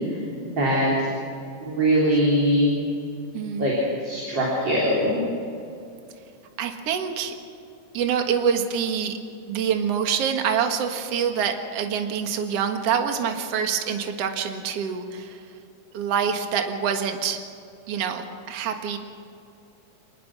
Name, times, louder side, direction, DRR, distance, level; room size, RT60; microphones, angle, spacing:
voice 1, 0.4-1.1 1.6-2.7 3.6-3.7 4.0-5.2, equal, 35° right, -4 dB, 4.3 m, -21 dB
voice 2, 3.3-3.7 6.6-7.3 7.9-9.2 9.5-15.4 15.9-17.4 17.9-19.0, right 7 dB, 55° right, 5 dB, 2.5 m, -26 dB
27.5 x 20.5 x 6.2 m, 2.6 s
omnidirectional pair, 3.6 m